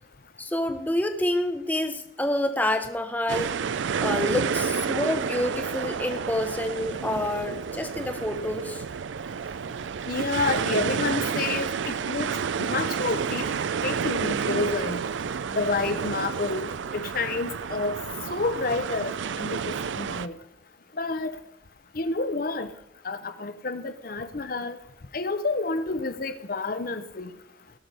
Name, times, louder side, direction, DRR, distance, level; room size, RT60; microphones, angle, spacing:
voice 1, 0.4-3.6 4.0-8.8, left 1 dB, 10° left, 7 dB, 0.8 m, -28 dB
sound 1, 3.3-20.3, right 6 dB, 70° right, 0.4 m, -30 dB
voice 2, 10.1-12.3 12.6-13.5 13.8-15.0 15.6-18.0 18.3-20.3 21.0-21.4 21.9-22.7 23.0-24.8 25.1-27.3, left 3 dB, 45° left, 11 dB, 0.7 m, -29 dB
17.5 x 6.4 x 5.4 m, 0.87 s
head